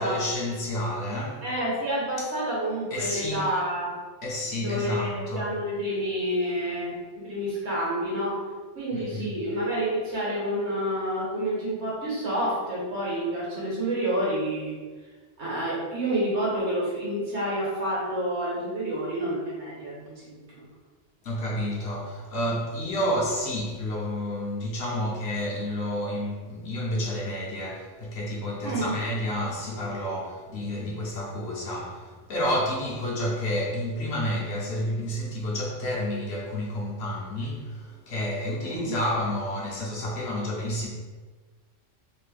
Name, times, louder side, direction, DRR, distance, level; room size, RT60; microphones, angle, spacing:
voice 1, 0.0-1.4 2.2-2.3 2.9-3.5 4.2-5.5 8.9-9.3 21.2-40.9, left 1 dB, 65° left, 0.8 m, -30 dB
voice 2, 1.4-4.0 4.6-6.9 7.2-8.3 8.7-14.7 15.4-20.6 28.6-28.9 38.6-38.9, right 1 dB, 65° right, 1.3 m, -29 dB
2.9 x 2.1 x 3.2 m
omnidirectional pair, 1.3 m